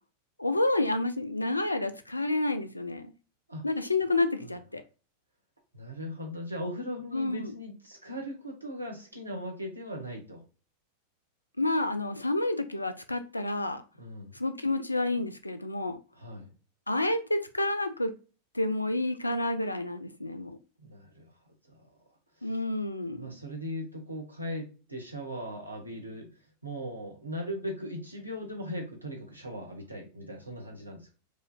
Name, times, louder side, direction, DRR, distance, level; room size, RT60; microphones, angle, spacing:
voice 1, 0.4-3.1 3.6-4.8 7.1-7.5 11.6-13.8 14.3-16.0 16.9-18.1 18.5-20.6 22.4-23.4, left 2 dB, 85° left, 10 dB, 0.4 m, -29 dB
voice 2, 5.7-10.4 14.0-14.3 16.1-16.5 20.8-21.3 21.7-21.9 22.4-22.5 23.1-31.1, equal, 85° right, 2 dB, 1.1 m, -39 dB
4.9 x 2.6 x 2.2 m, 0.34 s
figure-of-eight pair, 90°, 0 cm